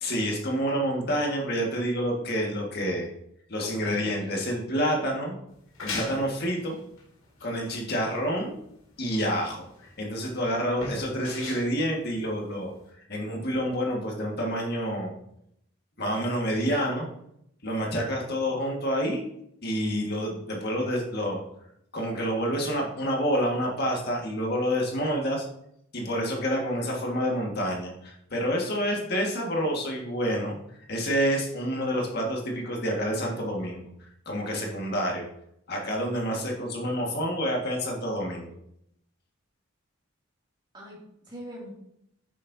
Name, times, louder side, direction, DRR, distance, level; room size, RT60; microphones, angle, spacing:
voice 1, 0.0-3.1 3.5-5.4 5.8-6.8 7.4-8.6 9.0-9.6 10.0-12.7 13.1-15.2 16.0-17.1 17.6-19.2 19.6-21.4 21.9-25.5 25.9-30.6 30.9-33.8 34.3-35.3 35.7-38.5, equal, 50° left, 0 dB, 1.8 m, -28 dB
voice 2, 3.6-4.4 40.7-41.7, equal, 20° right, -4 dB, 2.6 m, -42 dB
sound 1, 5.5-12.9, left 3 dB, 75° left, 2.6 m, -40 dB
9.4 x 7.5 x 2.8 m, 0.74 s
head